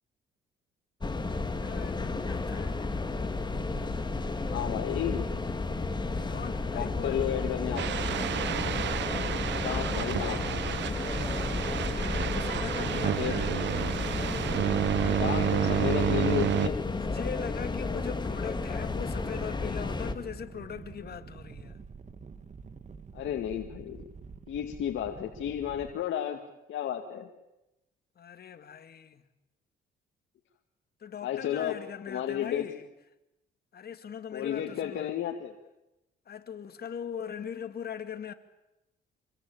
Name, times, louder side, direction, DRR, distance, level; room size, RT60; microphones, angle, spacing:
sound 1, 1.0-20.1, left 3 dB, 20° left, 2.4 m, -32 dB
voice 1, 1.2-2.9 6.1-7.3 11.9-13.5 15.0-16.2 16.8-21.8 28.2-29.2 31.0-32.9 33.7-35.2 36.3-38.3, left 8 dB, 50° left, 2.3 m, -41 dB
voice 2, 4.4-5.3 6.7-7.8 9.1-10.4 13.0-13.7 15.1-16.8 23.1-24.1 24.5-26.4 26.7-27.3 31.2-31.8 32.1-32.7 34.3-35.5, left 10 dB, 75° left, 2.2 m, -33 dB
sound 2, 7.8-16.7, right 11 dB, 65° right, 0.9 m, -30 dB
sound 3, 18.5-25.9, right 5 dB, 35° right, 2.0 m, -47 dB
26.5 x 22.5 x 8.9 m
cardioid pair, 90°, 20 cm